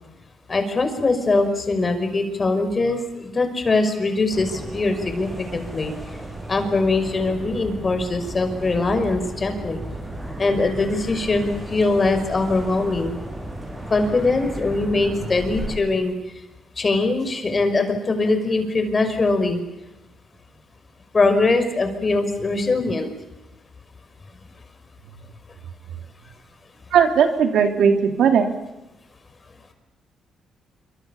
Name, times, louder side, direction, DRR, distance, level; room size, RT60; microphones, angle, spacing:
voice 1, 0.5-5.9 6.5-9.8 10.4-13.2 13.9-16.1 16.8-19.6 21.1-23.1, left 3 dB, 30° left, 7 dB, 5.5 m, -22 dB
sound 1, 4.3-15.8, right 1 dB, 10° right, 7.9 m, -34 dB
voice 2, 26.9-28.5, right 7 dB, 75° right, 6 dB, 3.2 m, -17 dB
26.5 x 25.0 x 7.2 m, 0.95 s
cardioid pair, 90°, 0 cm